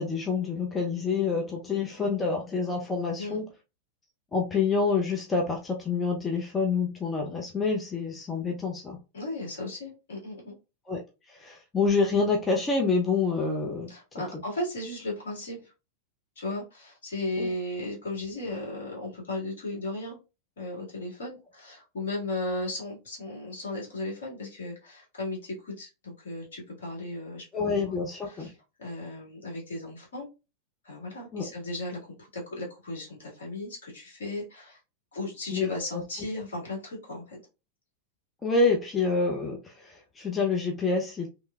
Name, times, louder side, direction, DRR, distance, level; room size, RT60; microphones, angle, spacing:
voice 1, 0.0-3.4 4.3-9.0 10.9-11.0 11.3-13.9 17.4-17.5 27.5-28.5 31.3-31.5 35.5-36.0 38.4-41.3, left 4 dB, 15° left, 0.7 m, -27 dB
voice 2, 9.1-10.5 13.9-15.7 16.4-20.2 20.6-27.7 28.3-28.5 28.8-30.3 30.8-34.8 35.1-37.4, left 2 dB, 65° left, 1.9 m, -36 dB
3.3 x 3.0 x 2.3 m
figure-of-eight pair, 90°, 0 cm